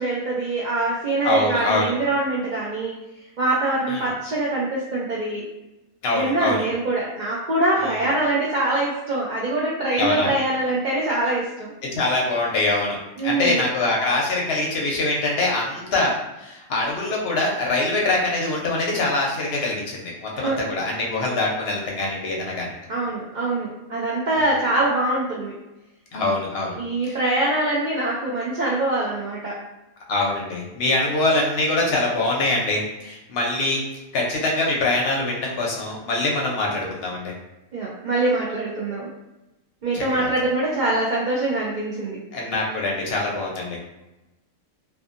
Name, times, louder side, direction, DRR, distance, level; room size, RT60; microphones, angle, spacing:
voice 1, 0.0-2.9 3.4-5.4 6.1-11.7 13.2-13.7 20.3-20.6 22.9-25.5 26.7-29.6 37.7-39.1 39.8-42.2, right 2 dB, 85° right, -5 dB, 0.4 m, -24 dB
voice 2, 1.2-1.9 3.9-4.1 6.0-6.6 7.8-7.9 10.0-10.3 11.9-13.0 13.2-16.1 16.4-22.7 26.1-26.8 27.0-27.2 30.1-33.8 34.1-37.3 39.9-40.0 42.3-43.8, left 2 dB, 55° left, -2 dB, 0.8 m, -24 dB
2.6 x 2.5 x 2.4 m, 0.99 s
omnidirectional pair, 1.4 m